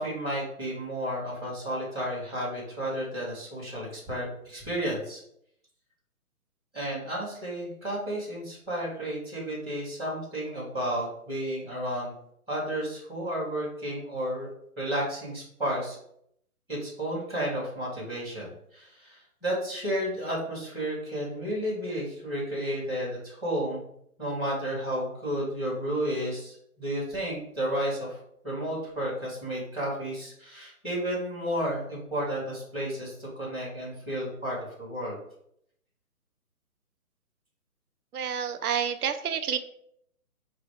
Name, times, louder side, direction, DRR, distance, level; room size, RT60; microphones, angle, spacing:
voice 1, 0.0-5.2 6.7-12.1 12.5-14.5 14.8-16.0 16.7-23.8 24.2-28.2 28.4-35.2, equal, ahead, -24 dB, 0.8 m, -32 dB
voice 2, 38.1-39.6, right 8 dB, 75° right, 9 dB, 0.6 m, -29 dB
5.3 x 2.4 x 3.6 m, 0.71 s
hypercardioid pair, 165°, 45 cm